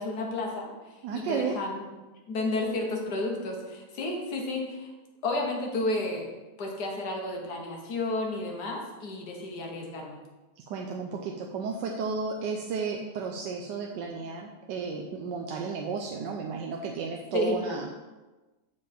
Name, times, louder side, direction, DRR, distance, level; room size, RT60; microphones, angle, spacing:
voice 1, 0.0-1.9 2.3-4.9 5.2-6.3 6.6-10.2 17.3-17.6, left 2 dB, 70° left, 0 dB, 1.7 m, -32 dB
voice 2, 1.0-1.6 10.7-17.9, right 5 dB, 85° right, 1 dB, 1.3 m, -33 dB
7.1 x 5.0 x 4.3 m, 1.2 s
omnidirectional pair, 1.9 m